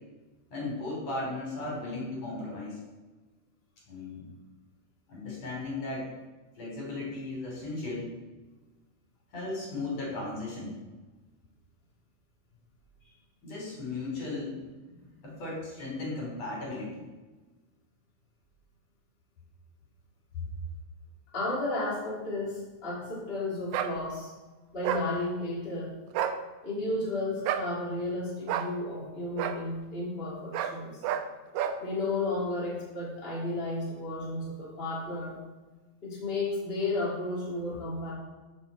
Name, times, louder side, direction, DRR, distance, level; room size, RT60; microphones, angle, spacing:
voice 1, 0.5-2.8 3.9-4.3 5.1-6.1 6.6-8.1 9.3-10.7 13.4-17.1, left 2 dB, 55° left, -4 dB, 4.5 m, -36 dB
voice 2, 21.3-24.3 24.7-25.9 26.6-30.9 31.8-35.4 36.0-38.1, left 2 dB, 20° left, -6 dB, 3.2 m, -33 dB
sound 1, 23.7-23.9 24.8-25.1 26.1-26.4 27.4-27.7 28.5-28.7 29.4-29.6 30.5-30.8 31.0-31.3 31.5-31.8, right 9 dB, 75° right, 1.9 m, -29 dB
14.5 x 6.3 x 4.3 m, 1.2 s
omnidirectional pair, 3.6 m